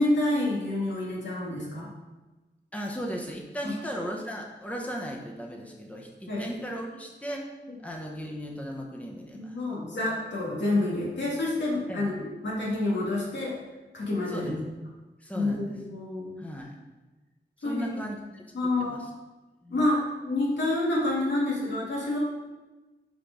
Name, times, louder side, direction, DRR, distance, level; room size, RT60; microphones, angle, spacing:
voice 1, 0.0-1.9 3.6-3.7 6.3-6.5 9.3-13.6 13.9-14.5 15.3-16.4 17.6-17.9 18.5-19.0 19.7-22.2, left 2 dB, 80° left, -5 dB, 2.1 m, -28 dB
voice 2, 2.7-7.4 7.8-9.6 11.9-12.1 14.3-14.6 15.2-15.6 16.4-16.7 17.6-18.5 18.8-19.0 19.6-19.8, equal, 5° left, 0 dB, 1.0 m, -36 dB
5.8 x 5.2 x 5.2 m, 1.2 s
wide cardioid pair, 85°, 19 cm